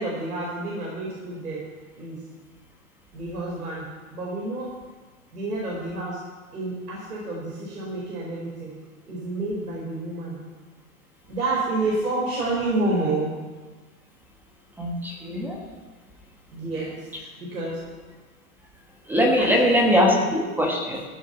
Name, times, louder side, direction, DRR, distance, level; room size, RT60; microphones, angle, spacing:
voice 1, 0.0-1.6 2.0-2.2 3.1-3.9 4.1-4.7 5.3-6.2 6.5-8.7 9.1-10.4 11.3-13.3 16.5-17.8 19.4-20.1, right 2 dB, 90° right, -5 dB, 4.9 m, -29 dB
voice 2, 14.8-15.6 19.1-21.0, equal, 5° right, 0 dB, 1.3 m, -21 dB
15.0 x 7.1 x 7.0 m, 1.3 s
hypercardioid pair, 150°, 44 cm